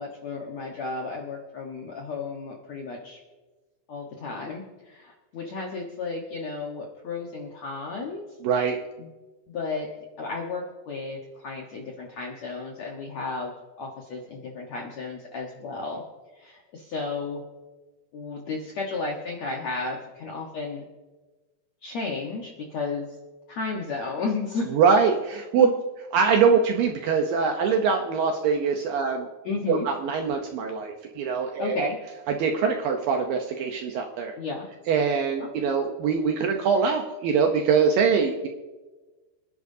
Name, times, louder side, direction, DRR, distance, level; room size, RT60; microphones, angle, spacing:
voice 1, 0.0-3.2 3.9-8.3 9.0-9.1 9.5-9.9 10.2-16.0 16.4-17.4 18.1-20.8 21.8-23.1 23.5-24.7 25.6-25.7 29.4-29.8 31.6-32.0 34.4-34.7 35.4-35.5, left 3 dB, 70° left, 0 dB, 1.7 m, -33 dB
voice 2, 8.4-8.8 24.7-25.7 26.1-29.3 29.7-31.9 32.4-34.3 34.9-38.5, right 6 dB, 75° right, 3 dB, 2.1 m, -23 dB
26.5 x 11.0 x 2.7 m, 1.2 s
omnidirectional pair, 5.0 m